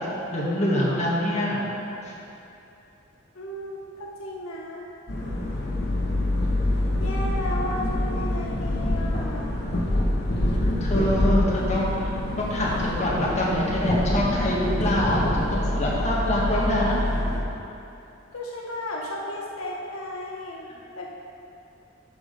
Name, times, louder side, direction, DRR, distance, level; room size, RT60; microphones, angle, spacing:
voice 1, 0.3-1.6 10.6-17.0, left 1 dB, 35° left, -6 dB, 1.5 m, -25 dB
voice 2, 3.3-4.9 6.7-9.6 18.3-20.7 21.0-21.1, left 1 dB, 80° left, -2 dB, 0.8 m, -34 dB
sound 1, 5.1-17.4, left 1 dB, 50° left, 1.1 m, -26 dB
11.5 x 4.9 x 3.9 m, 2.8 s
head